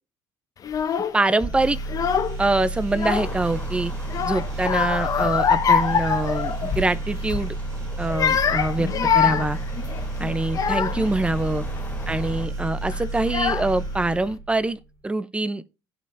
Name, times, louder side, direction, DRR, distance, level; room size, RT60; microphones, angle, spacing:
Child speech kid speaking / Crying sobbing, 0.6-1.2 1.8-2.5 2.8-3.6 4.1-6.9 7.2-7.5 8.0-11.1 11.8-12.1 12.9-13.0 13.3-14.0, left 7 dB, 40° left, 1.3 m, -24 dB
voice 1, 1.1-1.8 2.4-3.9 4.2-7.5 8.0-8.9 9.1-9.6 10.2-11.6 12.1-14.8 15.0-15.6, right 2 dB, 10° right, 0.8 m, -24 dB
sound 1, 1.4-14.8, right 2 dB, 35° right, 5.9 m, -31 dB
sound 2, 3.1-12.5, left 2 dB, 15° left, 2.7 m, -40 dB
16.5 x 5.5 x 2.7 m
cardioid pair, 110°, 9 cm